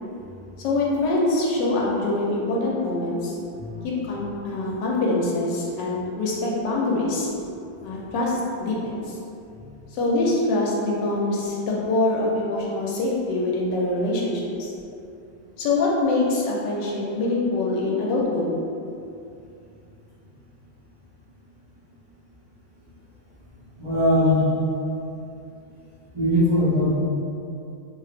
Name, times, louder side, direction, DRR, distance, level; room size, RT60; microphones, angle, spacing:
voice 1, 0.6-3.4 3.8-7.3 7.8-9.2 9.9-14.7 15.6-18.5, left 2 dB, 85° left, -4 dB, 1.3 m, -24 dB
voice 2, 23.8-24.5 26.1-26.9, left 1 dB, 20° right, -14 dB, 0.9 m, -20 dB
3.1 x 2.7 x 3.4 m, 2.6 s
omnidirectional pair, 1.9 m